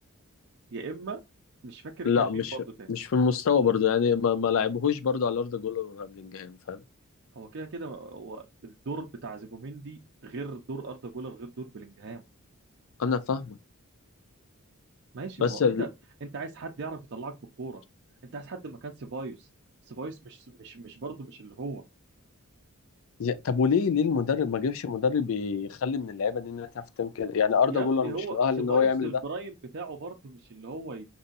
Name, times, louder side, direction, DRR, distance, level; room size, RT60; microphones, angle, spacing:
voice 1, 0.7-1.2 1.6-2.4 2.8-2.9 7.3-12.2 15.1-15.9 16.2-17.8 18.3-19.5 19.9-21.8 27.7-31.1, right 3 dB, 55° right, 0.5 m, -38 dB
voice 2, 2.1-2.6 2.9-6.8 13.0-13.6 15.4-15.8 23.2-26.7 27.0-29.2, left 6 dB, 65° left, 0.4 m, -26 dB
5.3 x 2.7 x 2.5 m
head